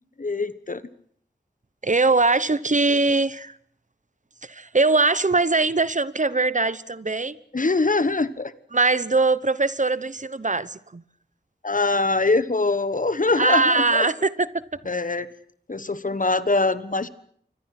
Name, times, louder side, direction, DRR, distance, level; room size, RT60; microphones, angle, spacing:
voice 1, 0.2-0.8 7.5-8.5 11.6-14.1 14.9-15.3 15.7-17.1, left 3 dB, 50° left, 1.2 m, -23 dB
voice 2, 1.8-3.5 4.5-7.4 8.7-11.0 13.4-14.5, right 3 dB, 45° right, 1.0 m, -21 dB
28.5 x 24.0 x 6.0 m
wide cardioid pair, 45°, 18 cm